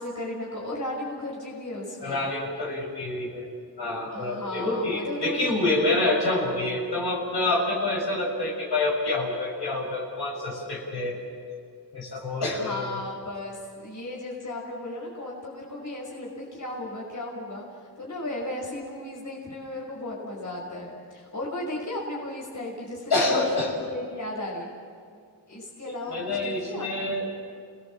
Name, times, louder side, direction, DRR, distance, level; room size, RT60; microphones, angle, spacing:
voice 1, 0.0-2.3 4.1-5.6 12.4-17.6 18.0-24.7 25.5-27.1, left 1 dB, 45° left, -3 dB, 5.5 m, -35 dB
voice 2, 2.0-3.4 3.8-11.1 11.9-13.0 23.1-23.7 26.1-27.3, left 2 dB, 70° left, -2 dB, 6.9 m, -27 dB
29.0 x 18.5 x 7.4 m, 2.2 s
cardioid pair, 75°, 41 cm